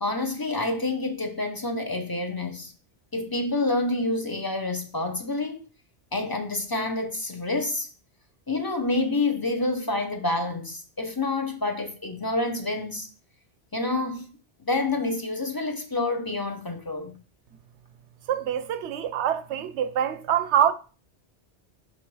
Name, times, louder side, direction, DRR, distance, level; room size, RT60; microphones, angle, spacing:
voice 1, 0.0-2.7 3.1-5.7 6.1-7.9 8.5-13.1 13.7-14.3 14.6-17.2, left 2 dB, 25° left, 0.7 m, -28 dB
voice 2, 18.3-20.7, right 9 dB, 80° right, 0.9 m, -25 dB
5.6 x 3.8 x 4.7 m
omnidirectional pair, 1.2 m